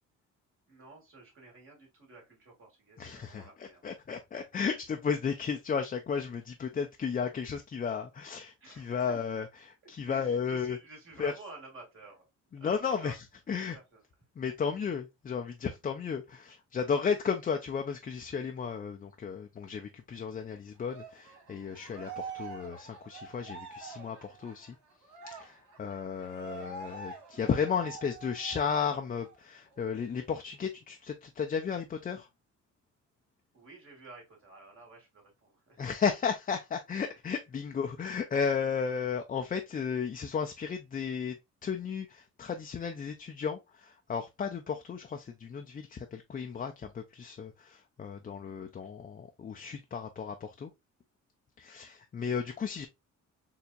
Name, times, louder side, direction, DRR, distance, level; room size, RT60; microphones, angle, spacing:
voice 1, 0.7-3.8 8.6-9.2 10.0-12.3 12.5-13.2 13.6-14.0 33.5-35.9, right 3 dB, 45° right, 2.3 m, -51 dB
voice 2, 3.0-10.8 11.2-11.3 12.5-13.8 14.4-24.8 25.3-32.3 35.8-41.4 41.6-50.7 51.6-52.9, left 6 dB, 30° left, 0.4 m, -34 dB
Cheering, 20.8-28.8 29.2-29.4 29.7-30.7, right 5 dB, 70° right, 1.5 m, -46 dB
4.3 x 2.8 x 2.4 m
cardioid pair, 90°, 30 cm